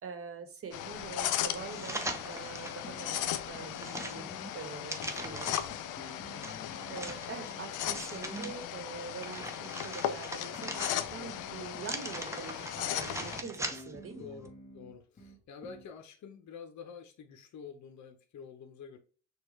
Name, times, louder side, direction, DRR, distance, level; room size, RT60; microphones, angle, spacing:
voice 1, 0.0-4.3 4.5-5.6 6.9-14.3, right 5 dB, 50° right, 1.2 m, -44 dB
sound 1, 0.7-13.4, left 11 dB, 90° left, 0.5 m, -37 dB
sound 2, 1.7-2.8 3.3-5.8 6.4-8.5 9.0-11.3 11.8-14.1 14.4-14.5, right 2 dB, 10° right, 0.7 m, -41 dB
sound 3, 2.8-4.3 5.0-8.2 10.6-12.0 12.7-15.9, left 1 dB, 30° left, 1.4 m, -52 dB
voice 2, 6.3-6.7 11.2-11.4 14.2-19.0, left 6 dB, 70° left, 0.8 m, -48 dB
6.5 x 2.4 x 3.2 m
cardioid pair, 90°, 30 cm